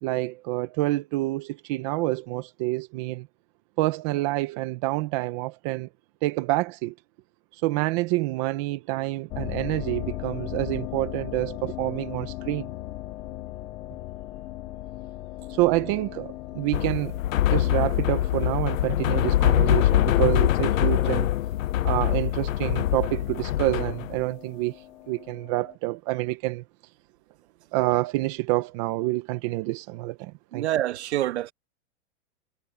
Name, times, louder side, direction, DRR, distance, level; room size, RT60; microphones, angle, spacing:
voice 1, 0.0-3.3 3.8-5.9 6.2-6.9 7.5-12.7 15.5-17.2 17.5-21.3 21.8-24.8 25.1-26.6 27.7-30.6, right 19 dB, 25° right, 0.8 m, -27 dB
sound 1, 9.3-25.8, left 16 dB, 10° left, 0.5 m, -39 dB
sound 2, 16.7-24.2, left 13 dB, 85° left, 0.7 m, -23 dB
voice 2, 30.5-31.5, right 13 dB, 55° right, 1.7 m, -26 dB
supercardioid pair, 165°, 39 cm